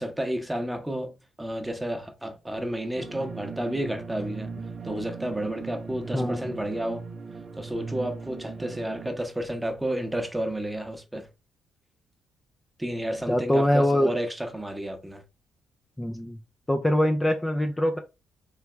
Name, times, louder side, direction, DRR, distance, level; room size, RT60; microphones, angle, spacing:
voice 1, 0.0-4.5 4.8-7.0 7.6-11.3 12.8-15.2, right 1 dB, 10° right, 1.0 m, -31 dB
sound 1, 3.0-9.1, right 4 dB, 45° right, 0.5 m, -39 dB
voice 2, 6.1-6.6 13.3-14.1 16.0-16.4 16.7-18.0, left 1 dB, 15° left, 0.6 m, -23 dB
3.4 x 3.3 x 3.2 m
hypercardioid pair, 45°, 0 cm